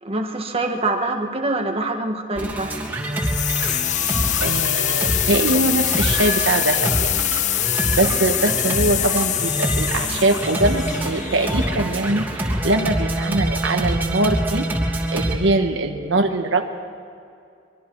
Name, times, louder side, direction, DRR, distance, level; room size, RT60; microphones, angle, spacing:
voice 1, 0.0-2.7, right 2 dB, 30° right, 3 dB, 1.7 m, -25 dB
sound 1, 2.4-15.3, right 1 dB, 10° right, 3.0 m, -25 dB
sound 2, 3.1-12.0, left 13 dB, 40° left, 0.5 m, -24 dB
voice 2, 4.4-7.1 8.0-14.7 15.1-16.6, right 2 dB, 75° right, 4 dB, 1.5 m, -22 dB
24.5 x 23.0 x 4.7 m, 2.5 s
head